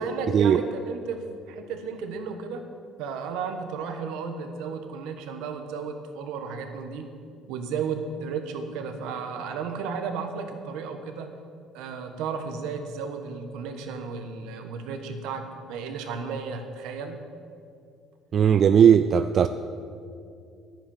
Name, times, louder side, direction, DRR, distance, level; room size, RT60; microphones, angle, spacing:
voice 1, 0.0-2.7 3.0-7.1 7.5-11.3 11.7-17.2, right 5 dB, 80° right, 6 dB, 1.3 m, -33 dB
voice 2, 18.3-19.5, right 8 dB, 50° right, 10 dB, 0.4 m, -17 dB
10.0 x 9.2 x 7.2 m, 2.4 s
supercardioid pair, 85°, 0 cm